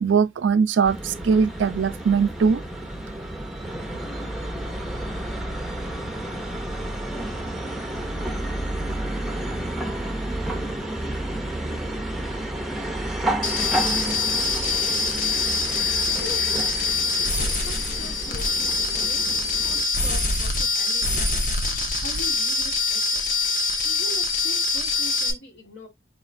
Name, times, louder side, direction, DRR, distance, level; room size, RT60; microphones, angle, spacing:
voice 1, 0.0-2.6, right 6 dB, 70° right, 0.4 m, -21 dB
sound 1, 0.8-19.8, right 1 dB, ahead, 0.5 m, -31 dB
sound 2, 13.4-25.3, left 3 dB, 40° left, 0.7 m, -24 dB
voice 2, 16.0-16.8 17.2-19.3 19.6-21.5 21.7-23.3 23.8-25.9, left 1 dB, 75° left, 1.3 m, -42 dB
4.4 x 3.1 x 2.5 m
head